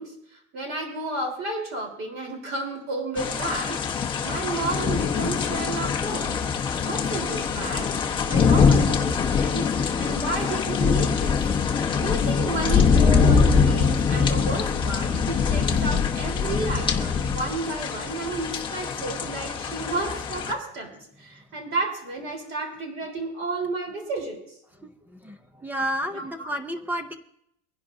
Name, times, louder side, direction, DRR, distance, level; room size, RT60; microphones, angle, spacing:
voice 1, 0.0-7.9 8.3-9.7 10.0-11.4 11.9-24.4 26.1-26.5, right 2 dB, 30° right, 2 dB, 3.7 m, -32 dB
sound 1, 3.2-20.5, left 5 dB, 10° left, 1.0 m, -23 dB
voice 2, 24.8-27.1, equal, 5° right, 8 dB, 0.5 m, -31 dB
24.0 x 11.0 x 2.6 m, 0.73 s
cardioid pair, 165°, 42 cm